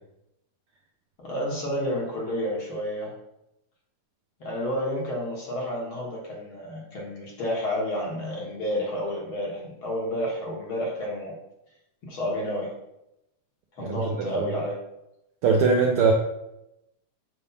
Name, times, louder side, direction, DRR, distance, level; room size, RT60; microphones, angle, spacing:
voice 1, 1.2-3.1 4.4-11.3 12.1-12.7 13.8-14.8, equal, 50° left, -3 dB, 2.1 m, -30 dB
voice 2, 15.4-16.1, right 4 dB, 90° right, 1 dB, 1.2 m, -20 dB
8.3 x 3.5 x 5.3 m, 0.88 s
omnidirectional pair, 3.5 m